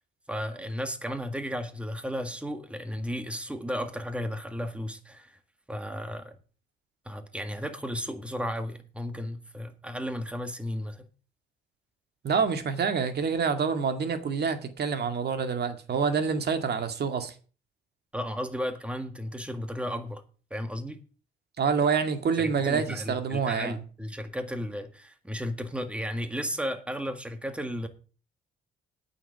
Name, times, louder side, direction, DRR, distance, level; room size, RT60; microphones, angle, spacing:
voice 1, 0.3-5.3 5.7-6.3 7.0-11.0 18.1-20.2 20.5-21.0 22.3-27.9, equal, 5° right, 1.8 m, -34 dB
voice 2, 12.2-17.3 21.6-23.8, right 5 dB, 55° right, 2.1 m, -27 dB
8.9 x 6.9 x 7.4 m
cardioid pair, 90°, 20 cm